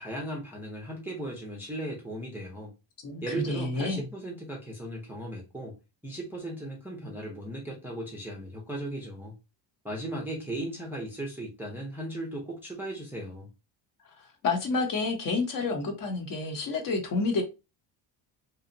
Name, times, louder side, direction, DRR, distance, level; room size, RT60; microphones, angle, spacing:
voice 1, 0.0-2.7 3.2-5.7 6.0-9.3 9.8-13.5, right 1 dB, 5° right, 0.4 m, -37 dB
voice 2, 3.0-4.0 14.2-17.4, left 3 dB, 45° left, 0.7 m, -29 dB
2.7 x 2.0 x 2.5 m
cardioid pair, 125°, 49 cm